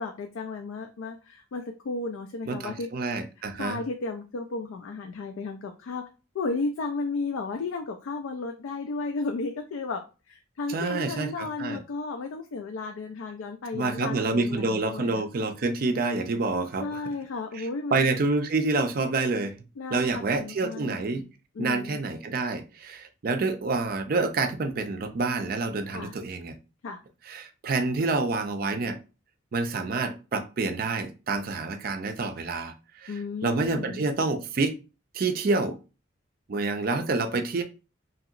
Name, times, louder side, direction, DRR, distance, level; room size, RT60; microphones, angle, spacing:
voice 1, 0.0-2.9 3.6-6.0 6.3-10.0 10.3-15.2 16.8-18.2 19.8-21.3 21.6-22.0 25.9-26.2 26.8-27.0 33.1-34.1, left 3 dB, 80° left, 0.4 m, -34 dB
voice 2, 2.5-3.8 10.7-11.8 13.7-17.0 17.5-19.6 19.9-21.2 21.6-26.6 27.3-29.0 29.5-33.1 33.4-34.8 35.1-35.8 36.5-37.6, right 3 dB, 45° right, 0.4 m, -28 dB
2.9 x 2.8 x 2.4 m
head